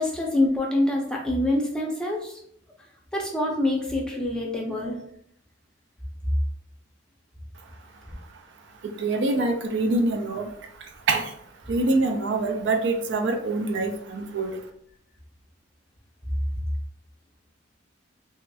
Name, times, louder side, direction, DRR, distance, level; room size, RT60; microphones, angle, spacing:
voice 1, 0.0-2.4 3.1-5.0, left 1 dB, 5° left, -2 dB, 0.5 m, -25 dB
voice 2, 9.0-10.5 11.1-11.3 11.7-14.5, right 2 dB, 65° right, 5 dB, 0.4 m, -25 dB
3.0 x 2.8 x 2.3 m, 0.70 s
head